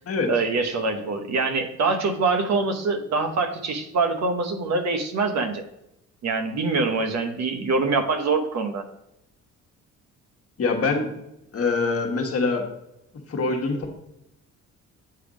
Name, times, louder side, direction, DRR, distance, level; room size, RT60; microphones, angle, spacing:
voice 1, 0.3-5.6 6.2-8.9, right 3 dB, 65° right, 7 dB, 1.0 m, -24 dB
voice 2, 10.6-11.1 11.5-12.6 13.3-14.0, left 3 dB, 50° left, 2 dB, 1.4 m, -24 dB
8.0 x 3.4 x 5.1 m, 0.84 s
cardioid pair, 90°, 30 cm